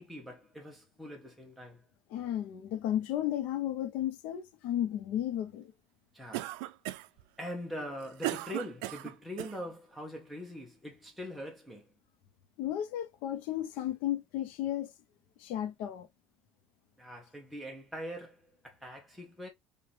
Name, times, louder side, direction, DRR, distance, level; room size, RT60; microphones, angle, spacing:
voice 1, 0.0-1.8 6.1-6.6 7.4-11.9 17.0-19.5, equal, ahead, 0.8 m, -42 dB
voice 2, 2.1-5.7 12.6-14.9 15.4-16.1, left 11 dB, 70° left, 0.9 m, -33 dB
Cough, 6.3-7.2 7.8-9.6, right 17 dB, 90° right, 0.4 m, -37 dB
4.7 x 2.5 x 3.3 m
cardioid pair, 145°, 2 cm